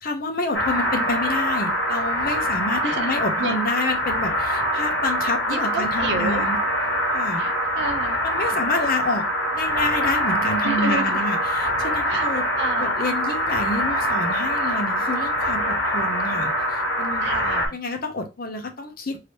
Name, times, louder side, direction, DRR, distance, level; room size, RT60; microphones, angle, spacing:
voice 1, 0.0-6.6 7.1-7.4 8.2-9.3 9.5-12.5 12.8-17.3 17.7-19.2, left 2 dB, 50° left, 0.8 m, -28 dB
sound 1, 0.5-17.7, equal, 80° left, 1.6 m, -24 dB
voice 2, 5.5-6.5 7.4-8.2 10.6-11.2 12.1-12.3 12.6-13.0 17.2-17.8, right 3 dB, 65° right, 0.7 m, -30 dB
3.3 x 2.8 x 2.9 m
head